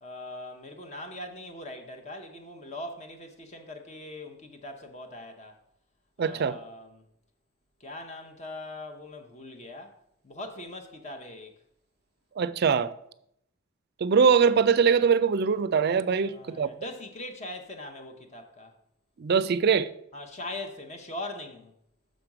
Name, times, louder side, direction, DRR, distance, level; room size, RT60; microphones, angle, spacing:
voice 1, 0.0-5.6 6.2-7.0 7.8-9.9 10.2-11.5 16.2-18.7 20.1-21.7, left 1 dB, 35° left, 0.8 m, -41 dB
voice 2, 6.2-6.6 12.4-12.9 14.0-16.7 19.2-19.9, right 6 dB, 50° right, 0.4 m, -22 dB
6.3 x 5.1 x 5.9 m
head